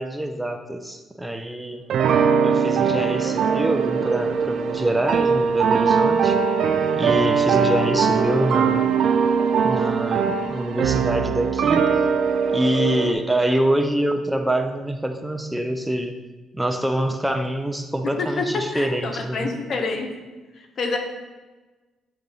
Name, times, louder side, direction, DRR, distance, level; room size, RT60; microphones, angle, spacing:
voice 1, 0.0-1.8 2.4-6.4 6.9-8.8 9.6-11.9 12.5-16.2 16.5-19.5, right 1 dB, 5° right, 5 dB, 0.5 m, -25 dB
sound 1, 1.9-13.1, right 6 dB, 70° right, 0.4 m, -21 dB
voice 2, 18.7-20.1 20.6-21.0, left 4 dB, 55° left, 3 dB, 0.9 m, -27 dB
6.8 x 2.9 x 5.4 m, 1.2 s
cardioid pair, 90°, 0 cm